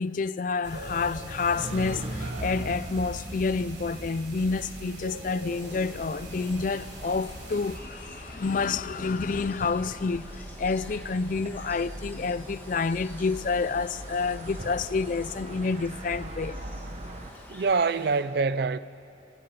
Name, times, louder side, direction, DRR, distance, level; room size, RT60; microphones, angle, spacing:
voice 1, 0.0-16.6, left 4 dB, 45° left, 0.4 m, -29 dB
sound 1, 0.6-7.8, right 1 dB, 70° right, 5.0 m, -42 dB
sound 2, 1.6-17.3, right 1 dB, 35° right, 1.1 m, -40 dB
sound 3, 5.4-18.2, left 1 dB, 10° left, 2.3 m, -49 dB
voice 2, 17.5-18.8, right 4 dB, 55° right, 0.4 m, -25 dB
29.5 x 15.5 x 5.8 m
head